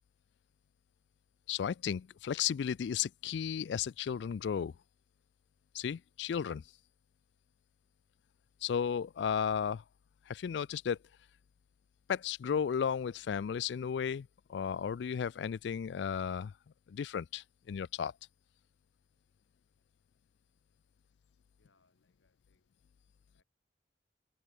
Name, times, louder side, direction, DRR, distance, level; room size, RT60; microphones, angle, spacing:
voice 1, 1.5-4.7 5.7-6.6 8.6-9.8 10.3-11.0 12.1-16.5 16.9-18.1, left 7 dB, 70° left, 0.3 m, -34 dB
voice 2, 21.0-21.3 21.6-22.8 23.3-23.4, left 3 dB, 90° left, 7.6 m, -76 dB
head